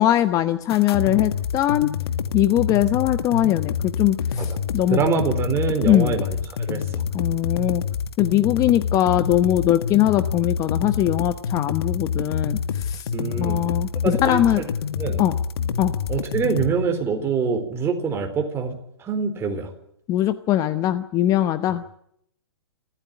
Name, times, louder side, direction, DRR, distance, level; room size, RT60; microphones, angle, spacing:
voice 1, 0.0-1.9 2.3-5.0 5.8-6.2 7.1-7.8 8.2-13.1 13.4-14.6 15.2-15.4 15.8-15.9 20.1-22.0, left 13 dB, 25° left, 12 dB, 0.9 m, -21 dB
sound 1, 0.7-16.7, left 7 dB, 65° left, 1.9 m, -27 dB
voice 2, 4.9-6.3 6.7-7.0 13.1-13.6 14.0-14.6 15.0-15.2 16.1-19.7, right 5 dB, 20° right, 5 dB, 4.2 m, -25 dB
28.5 x 14.5 x 9.9 m, 0.72 s
hypercardioid pair, 140°, 14 cm